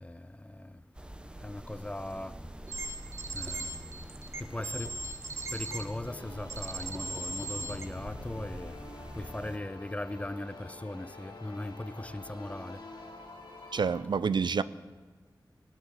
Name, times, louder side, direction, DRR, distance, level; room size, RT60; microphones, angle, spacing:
voice 1, 0.0-0.8 1.4-2.4 3.3-4.1 4.4-5.0 5.5-8.8 9.1-12.8, left 1 dB, 15° left, 0.4 m, -39 dB
sound 1, 0.9-9.6, right 1 dB, 10° right, 0.7 m, -45 dB
sound 2, 2.7-5.8 6.5-7.8, right 2 dB, 40° right, 1.3 m, -38 dB
sound 3, 6.0-14.0, left 2 dB, 80° left, 2.5 m, -47 dB
voice 2, 13.7-14.6, right 5 dB, 70° right, 0.4 m, -28 dB
18.0 x 6.4 x 9.5 m
wide cardioid pair, 105°, 8 cm